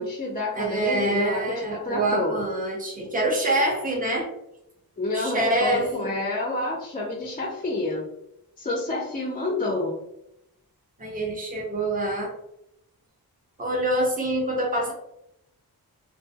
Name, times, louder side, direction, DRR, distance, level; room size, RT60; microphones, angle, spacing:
voice 1, 0.0-2.4 5.0-8.0 8.6-10.0, left 2 dB, 25° left, -1 dB, 0.4 m, -28 dB
voice 2, 0.5-4.3 5.1-6.1 11.0-12.3 13.6-14.9, right 1 dB, 20° right, -2 dB, 0.7 m, -25 dB
2.2 x 2.2 x 2.7 m, 0.81 s
wide cardioid pair, 95°, 38 cm